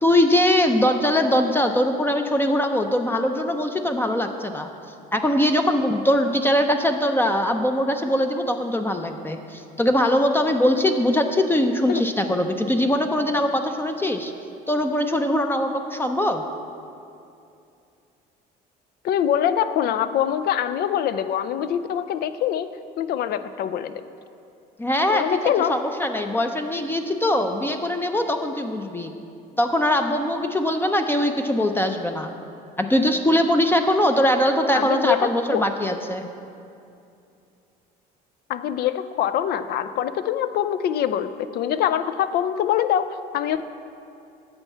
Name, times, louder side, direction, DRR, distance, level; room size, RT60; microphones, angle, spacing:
voice 1, 0.0-4.7 5.1-14.3 14.7-16.4 24.8-29.1 29.6-32.4 32.8-36.3, left 1 dB, 10° left, 5 dB, 0.5 m, -22 dB
voice 2, 19.0-22.7 23.0-24.0 25.1-25.8 34.7-35.6 38.5-43.6, left 10 dB, 65° left, 12 dB, 0.5 m, -24 dB
8.8 x 4.5 x 7.2 m, 2.6 s
supercardioid pair, 85°, 18 cm